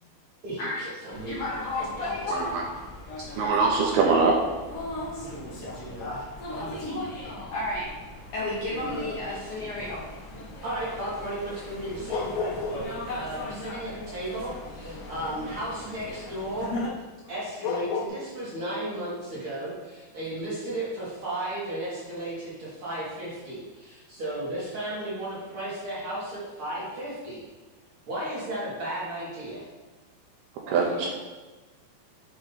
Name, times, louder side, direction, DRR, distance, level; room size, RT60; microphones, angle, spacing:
voice 1, 0.4-1.3 10.6-16.7 17.3-27.4 28.1-29.7 30.6-31.1, right 1 dB, 45° right, -9 dB, 1.9 m, -34 dB
sound 1, 1.1-16.9, left 1 dB, 50° left, 1.8 m, -39 dB
voice 2, 1.3-2.5 6.0-6.2 6.6-7.9 8.3-10.0 17.1-17.2, left 2 dB, 75° left, -6 dB, 1.8 m, -32 dB
voice 3, 2.3-2.6 3.4-4.4 30.7-31.1, right 4 dB, 80° right, -1 dB, 2.4 m, -22 dB
sound 2, 11.6-13.0 13.2-15.7 17.3-17.4 17.6-18.1, left 5 dB, 90° left, 2.9 m, -32 dB
7.7 x 3.1 x 5.5 m, 1.3 s
omnidirectional pair, 5.0 m